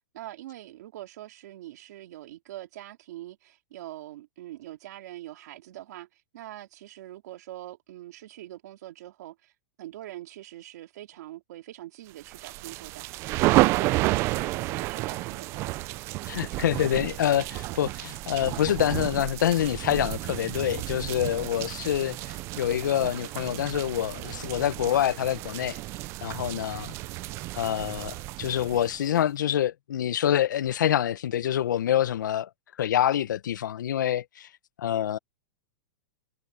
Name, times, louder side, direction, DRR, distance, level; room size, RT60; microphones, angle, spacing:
voice 1, 0.1-9.5 9.8-15.9, right 14 dB, 60° right, 3.0 m, -43 dB
sound 1, 12.3-29.2, right 19 dB, 25° right, 0.4 m, -31 dB
voice 2, 16.2-25.8 26.2-26.9 27.6-32.5 32.8-34.5 34.8-35.2, left 11 dB, 90° left, 0.8 m, -26 dB
supercardioid pair, 160°, 10 cm